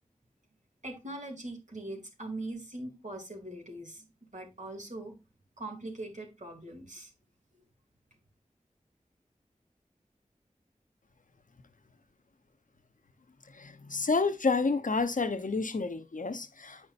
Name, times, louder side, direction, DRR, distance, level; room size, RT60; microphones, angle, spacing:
voice 1, 0.8-5.1 5.6-7.1, right 2 dB, 65° right, 2.9 m, -41 dB
voice 2, 13.6-16.8, left 4 dB, 75° left, 0.8 m, -29 dB
9.3 x 5.4 x 2.6 m
wide cardioid pair, 50°, 14 cm